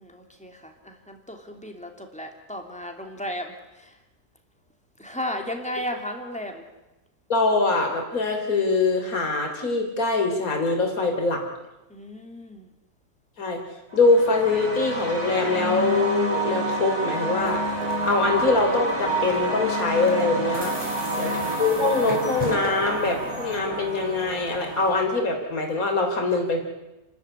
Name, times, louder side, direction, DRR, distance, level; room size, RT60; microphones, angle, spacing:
voice 1, 0.0-4.0 5.0-6.6 11.9-12.7, left 1 dB, 5° left, 3 dB, 2.9 m, -35 dB
voice 2, 7.3-11.4 13.4-13.6 13.9-17.6 18.0-20.7 21.2-26.6, left 3 dB, 65° left, 2 dB, 3.8 m, -23 dB
sound 1, 13.9-25.0, right 1 dB, 75° right, 6.7 m, -29 dB
sound 2, 17.4-25.1, right 1 dB, 20° right, 3.3 m, -38 dB
30.0 x 13.5 x 9.9 m, 1.0 s
omnidirectional pair, 1.6 m